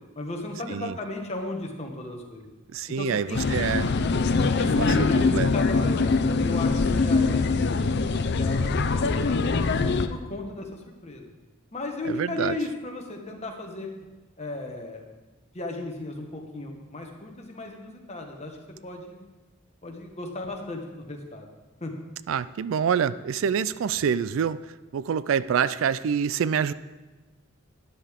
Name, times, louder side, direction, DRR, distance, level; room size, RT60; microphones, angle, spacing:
voice 1, 0.1-2.5 3.0-3.7 4.5-7.9 8.4-11.3 11.7-13.9 14.4-15.0 15.5-18.6 18.8-19.2 19.8-21.5 21.8-21.9, left 2 dB, 30° left, 2 dB, 1.4 m, -35 dB
voice 2, 2.7-3.9 4.6-5.5 12.1-12.6 22.3-24.6 24.9-26.7, right 7 dB, 70° right, 16 dB, 0.3 m, -26 dB
sound 1, 3.3-10.1, left 4 dB, 55° left, 0.5 m, -23 dB
12.5 x 10.0 x 3.6 m, 1.2 s
head